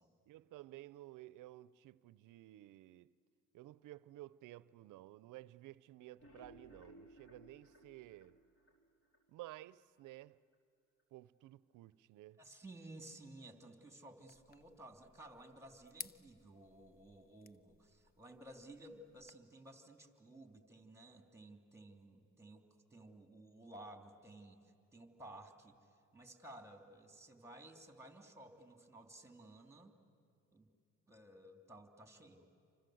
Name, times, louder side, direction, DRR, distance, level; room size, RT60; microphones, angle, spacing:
voice 1, 0.3-3.1 3.5-8.4 9.3-10.4 11.1-12.4, right 16 dB, 70° right, 0.7 m, -54 dB
sound 1, 6.0-9.2 9.6-9.7 10.1-10.2 10.5-10.6, equal, 45° left, 4.6 m, -61 dB
voice 2, 12.4-24.6 24.9-25.8 26.1-30.0 30.5-30.7 31.1-32.5, right 1 dB, 10° right, 3.0 m, -56 dB
sound 2, 14.3-19.3, left 6 dB, 30° left, 0.7 m, -56 dB
29.0 x 25.0 x 7.9 m
cardioid pair, 90°, 32 cm